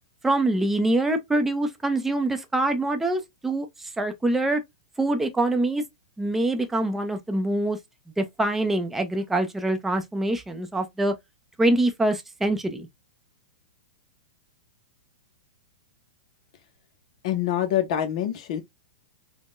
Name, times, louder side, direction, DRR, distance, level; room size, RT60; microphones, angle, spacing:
voice 1, 0.2-3.7 4.0-4.6 5.0-5.8 6.2-7.8 8.2-11.1 11.6-12.9, right 2 dB, 5° right, 0.5 m, -24 dB
voice 2, 17.2-18.6, left 11 dB, 55° left, 0.6 m, -25 dB
3.5 x 2.1 x 2.5 m
hypercardioid pair, 130°, 4 cm